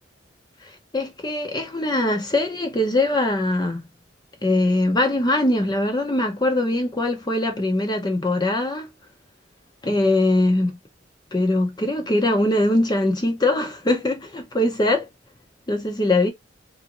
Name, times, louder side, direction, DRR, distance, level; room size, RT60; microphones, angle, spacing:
voice 1, 0.9-3.9 4.4-8.9 9.8-10.8 11.3-15.1 15.7-16.3, left 1 dB, 20° left, 0.8 m, -22 dB
3.5 x 2.5 x 2.9 m
head